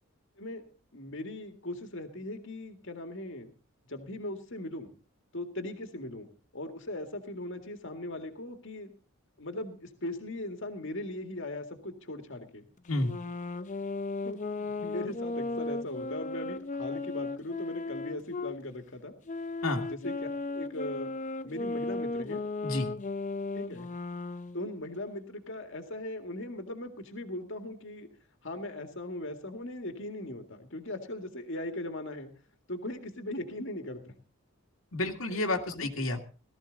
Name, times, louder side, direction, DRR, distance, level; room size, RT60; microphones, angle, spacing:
voice 1, 0.9-3.5 3.9-4.9 5.3-8.9 9.4-12.6 14.2-19.1 19.9-21.1 21.4-22.4 23.5-23.9 24.5-28.1 28.4-32.3 32.7-34.1 35.7-36.1, left 1 dB, 60° left, 5 dB, 2.0 m, -39 dB
sound 1, 12.9-18.6 19.3-24.6, left 3 dB, 35° left, 0.6 m, -36 dB
voice 2, 34.9-36.2, left 2 dB, 75° left, 2 dB, 2.1 m, -30 dB
18.0 x 13.5 x 4.0 m, 0.35 s
head